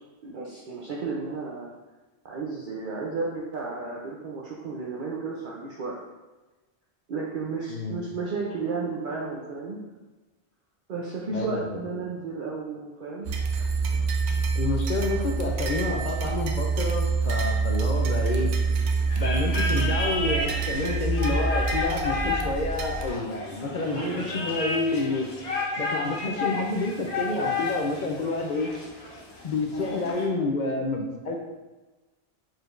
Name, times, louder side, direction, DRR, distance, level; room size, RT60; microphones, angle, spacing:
voice 1, 0.2-1.7 2.2-6.0 7.1-9.8 10.9-13.3 23.8-24.2, right 4 dB, 55° right, -4 dB, 0.7 m, -33 dB
voice 2, 11.3-12.1 14.5-18.5 19.1-24.0 24.3-25.3 25.8-28.7 29.4-31.4, left 3 dB, 55° left, 1 dB, 0.6 m, -29 dB
sound 1, 13.3-23.1, right 4 dB, 90° right, 0.9 m, -26 dB
sound 2, 19.1-30.2, left 3 dB, 70° left, 1.4 m, -32 dB
4.8 x 4.4 x 2.5 m, 1.2 s
omnidirectional pair, 1.1 m